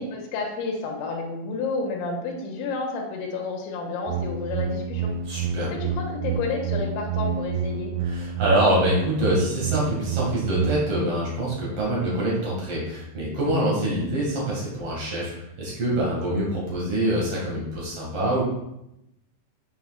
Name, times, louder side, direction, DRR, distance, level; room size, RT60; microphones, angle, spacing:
voice 1, 0.0-5.1 5.7-7.9, left 3 dB, 75° left, -1 dB, 3.2 m, -30 dB
sound 1, 4.1-10.7, right 6 dB, 85° right, 3.1 m, -28 dB
voice 2, 5.2-5.7 8.0-18.4, right 1 dB, 60° right, -5 dB, 1.5 m, -25 dB
8.4 x 6.2 x 2.4 m, 0.85 s
omnidirectional pair, 5.8 m